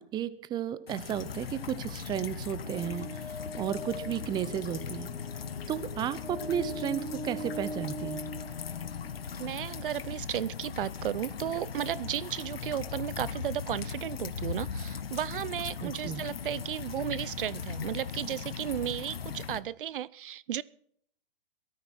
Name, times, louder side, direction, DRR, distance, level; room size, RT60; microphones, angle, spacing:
voice 1, 0.0-5.1 5.7-8.3 15.8-16.2, right 10 dB, 15° right, 16 dB, 0.7 m, -34 dB
sound 1, 0.9-19.6, left 6 dB, 80° left, 1.4 m, -39 dB
sound 2, 2.4-9.4, equal, 5° left, 5.0 m, -42 dB
voice 2, 9.4-20.6, right 11 dB, 65° right, 22 dB, 0.6 m, -34 dB
18.0 x 13.5 x 4.4 m, 0.65 s
hypercardioid pair, 135°, 29 cm